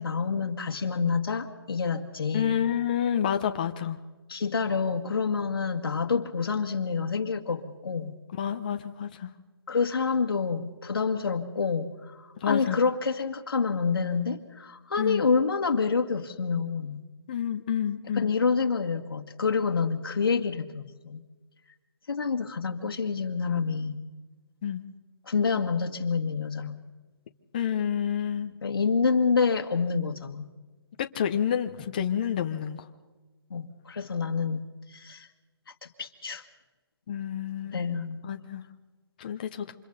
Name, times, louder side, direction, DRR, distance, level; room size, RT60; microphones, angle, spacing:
voice 1, 0.0-2.6 4.3-8.2 9.7-17.0 18.1-21.2 22.1-24.0 25.3-26.8 28.6-30.5 33.5-35.3 35.8-36.4 37.7-38.2, left 5 dB, 60° left, 4 dB, 2.0 m, -28 dB
voice 2, 2.3-4.0 8.4-9.3 12.4-12.8 15.0-15.3 17.3-18.3 24.6-24.8 27.5-28.5 31.0-32.8 37.1-37.9 38.2-38.6 39.2-39.7, left 9 dB, 20° left, 6 dB, 0.6 m, -29 dB
28.5 x 26.0 x 4.0 m, 1.2 s
hypercardioid pair, 170°, 13 cm